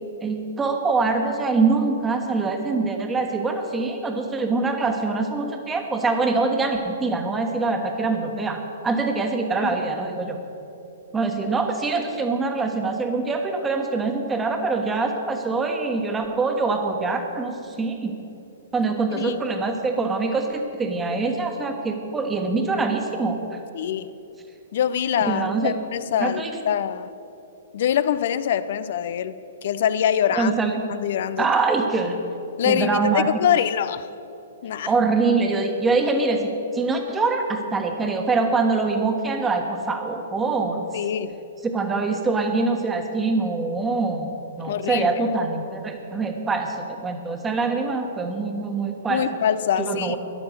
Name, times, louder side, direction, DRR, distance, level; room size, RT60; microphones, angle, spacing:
voice 1, 0.2-10.4 11.1-18.1 18.7-23.6 25.3-25.7 26.2-26.6 30.3-30.8 31.4-32.2 32.6-33.3 34.9-40.9 41.6-49.2 49.8-50.2, right 3 dB, 15° right, 4 dB, 1.4 m, -24 dB
voice 2, 23.7-24.1 24.7-27.1 27.7-30.5 30.9-31.5 32.6-34.1 34.6-34.9 40.9-41.4 44.7-45.1 49.1-50.2, left 9 dB, 50° left, 14 dB, 0.5 m, -24 dB
13.5 x 11.0 x 6.6 m, 2.9 s
figure-of-eight pair, 115°, 0 cm